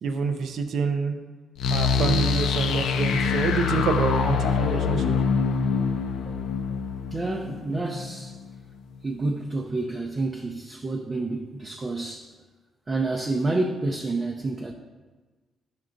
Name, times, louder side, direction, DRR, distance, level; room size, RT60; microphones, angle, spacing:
voice 1, 0.0-1.2 1.7-5.1, right 4 dB, 70° right, 6 dB, 0.6 m, -27 dB
sound 1, 1.6-8.4, left 5 dB, 90° left, 0.5 m, -25 dB
voice 2, 7.1-8.3 9.0-12.3 12.9-14.7, right 2 dB, 25° right, 1 dB, 0.5 m, -29 dB
10.5 x 5.9 x 2.5 m, 1.3 s
cardioid pair, 115°, 0 cm